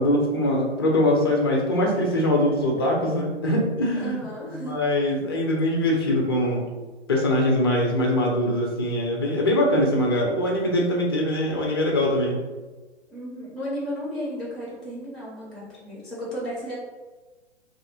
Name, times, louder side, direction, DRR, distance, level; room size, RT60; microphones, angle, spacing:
voice 1, 0.0-4.2 4.5-6.6 7.1-12.4, left 1 dB, 20° left, -1 dB, 0.4 m, -22 dB
voice 2, 3.9-4.8 13.1-16.8, equal, ahead, -6 dB, 0.9 m, -33 dB
2.7 x 2.5 x 4.0 m, 1.2 s
figure-of-eight pair, 125°, 34 cm